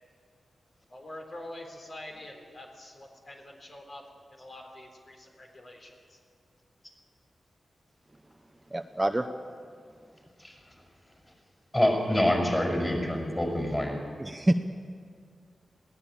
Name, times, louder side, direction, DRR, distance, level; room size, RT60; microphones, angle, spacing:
voice 1, 0.9-4.0 4.3-6.2, left 1 dB, 50° left, 1 dB, 4.0 m, -45 dB
voice 2, 8.7-9.3 14.2-14.5, right 1 dB, 15° right, 6 dB, 0.7 m, -26 dB
voice 3, 11.7-14.0, left 1 dB, 15° left, 2 dB, 6.0 m, -26 dB
21.0 x 17.0 x 8.7 m, 2.2 s
wide cardioid pair, 95°, 0 cm